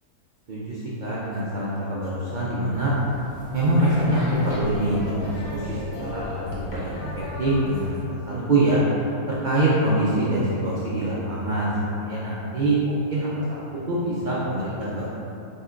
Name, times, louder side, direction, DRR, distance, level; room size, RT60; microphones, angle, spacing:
voice 1, 0.5-2.9 3.5-7.1 7.4-8.8 9.3-15.2, right 1 dB, 90° right, -8 dB, 0.4 m, -24 dB
sound 1, 2.6-8.1, equal, 65° left, 1.3 m, -36 dB
6.6 x 2.9 x 2.5 m, 3.0 s
omnidirectional pair, 1.6 m